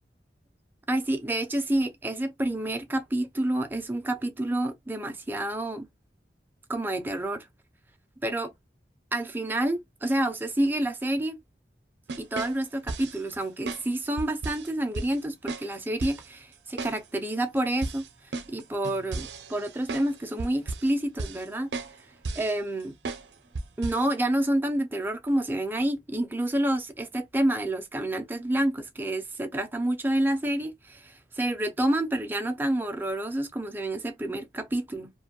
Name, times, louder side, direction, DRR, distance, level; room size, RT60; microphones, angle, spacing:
voice 1, 0.9-5.9 6.7-7.5 8.2-8.5 9.1-11.4 12.2-18.1 18.5-21.7 22.4-22.9 23.8-35.1, right 1 dB, 10° right, 0.4 m, -28 dB
sound 1, 12.1-13.2 13.7-13.8 14.2-14.7 14.9-15.1 15.5-15.7 16.0-16.3 16.8-17.0 17.3-17.4 17.8-20.1 20.4-20.9 21.2-21.5 21.7-21.9 22.2-22.5 23.0-23.3 23.5-24.1, right 3 dB, 70° right, 0.5 m, -34 dB
2.5 x 2.2 x 2.8 m
head